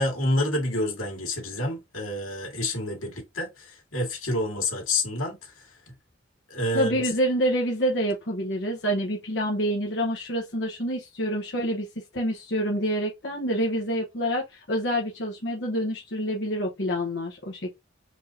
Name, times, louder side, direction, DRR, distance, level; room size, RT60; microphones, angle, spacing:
voice 1, 0.0-5.5 6.5-7.0, left 1 dB, 90° left, 2.1 m, -28 dB
voice 2, 6.7-11.9 12.1-17.7, equal, 55° left, 1.1 m, -27 dB
4.6 x 2.8 x 4.0 m
head